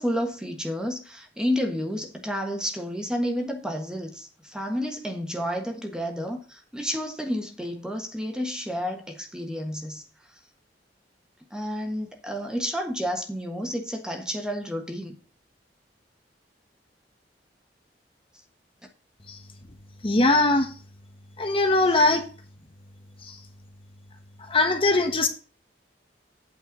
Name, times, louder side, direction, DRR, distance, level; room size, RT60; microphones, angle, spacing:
voice 1, 0.0-10.0 11.5-15.2, equal, 5° right, 1.4 m, -30 dB
voice 2, 20.0-20.7 21.4-22.3 23.3-23.4 24.5-25.3, left 2 dB, 30° left, 1.1 m, -21 dB
8.7 x 4.6 x 5.9 m
head